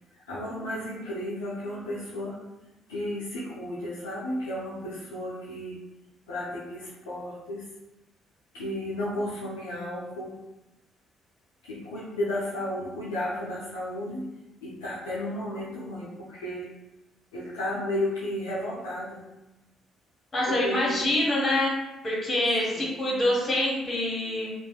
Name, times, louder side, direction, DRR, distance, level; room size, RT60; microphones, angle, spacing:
voice 1, 0.1-2.4 2.9-5.8 6.3-7.7 8.5-10.4 11.6-16.7 17.3-19.3 20.5-21.0 22.7-22.9, left 1 dB, 80° left, -7 dB, 0.4 m, -33 dB
voice 2, 20.3-21.8 22.0-24.5, left 1 dB, 35° left, -4 dB, 1.2 m, -25 dB
2.5 x 2.2 x 2.3 m, 0.99 s
hypercardioid pair, 45°, 0 cm